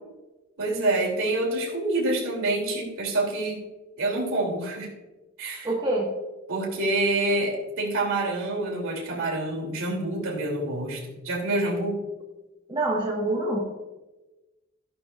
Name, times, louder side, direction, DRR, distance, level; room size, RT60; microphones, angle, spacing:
voice 1, 0.6-3.6 4.0-4.9 5.4-5.7 6.5-12.0, right 2 dB, 65° right, 0 dB, 2.9 m, -27 dB
voice 2, 5.6-6.1 12.7-13.6, right 2 dB, 20° right, -2 dB, 1.4 m, -25 dB
14.0 x 11.0 x 2.5 m, 1.1 s
head